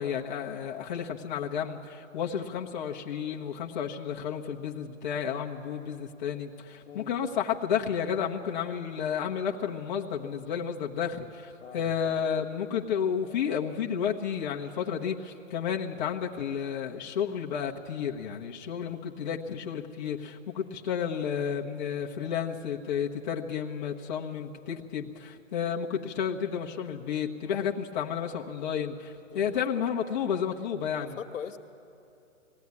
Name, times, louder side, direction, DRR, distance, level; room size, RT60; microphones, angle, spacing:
voice 1, 0.0-31.2, left 8 dB, 35° left, -1 dB, 1.1 m, -32 dB
voice 2, 6.8-7.3 11.6-12.2 29.3-29.9 31.0-31.6, left 8 dB, 75° left, 5 dB, 1.5 m, -42 dB
20.0 x 15.5 x 9.6 m, 2.7 s
hypercardioid pair, 160°, 39 cm